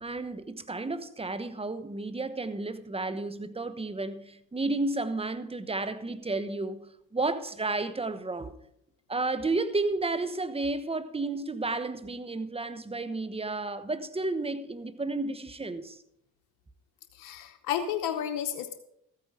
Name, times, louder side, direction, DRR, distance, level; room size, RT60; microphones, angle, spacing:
voice 1, 0.0-8.5 9.1-16.0, right 2 dB, 20° right, 1.2 m, -32 dB
voice 2, 17.1-18.7, left 9 dB, 85° left, 0.9 m, -32 dB
14.0 x 9.2 x 5.0 m
supercardioid pair, 70°, 32 cm